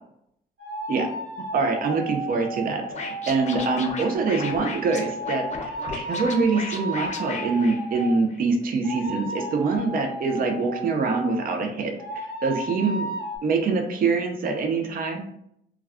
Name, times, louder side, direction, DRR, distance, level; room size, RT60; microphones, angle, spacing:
sound 1, 0.6-8.2 8.8-11.5 12.0-13.4, right 1 dB, 75° right, 1.0 m, -34 dB
voice 1, 1.5-11.9 12.4-13.1 13.4-15.3, right 4 dB, 45° right, 2 dB, 0.6 m, -24 dB
Scratching (performance technique), 2.9-8.4, left 4 dB, 35° left, 0.6 m, -36 dB
2.3 x 2.2 x 3.4 m, 0.75 s
cardioid pair, 90°, 20 cm